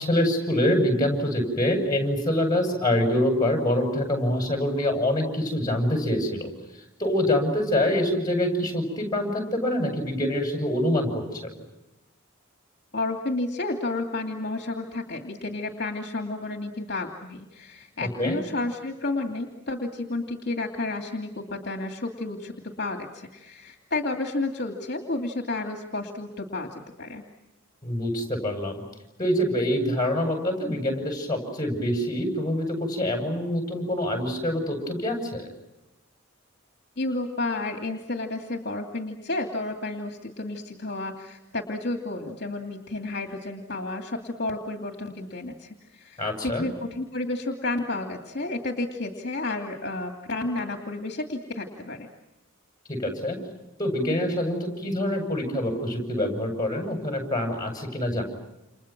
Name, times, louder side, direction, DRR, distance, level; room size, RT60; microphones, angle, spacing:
voice 1, 0.0-6.5 7.0-11.5 18.0-18.4 27.8-28.8 29.2-35.4 46.2-46.7 52.9-53.4 53.8-58.2, left 1 dB, 20° left, 3 dB, 7.9 m, -25 dB
voice 2, 12.9-27.2 37.0-52.1, left 2 dB, 50° left, 2 dB, 2.6 m, -31 dB
30.0 x 29.5 x 6.1 m, 0.96 s
head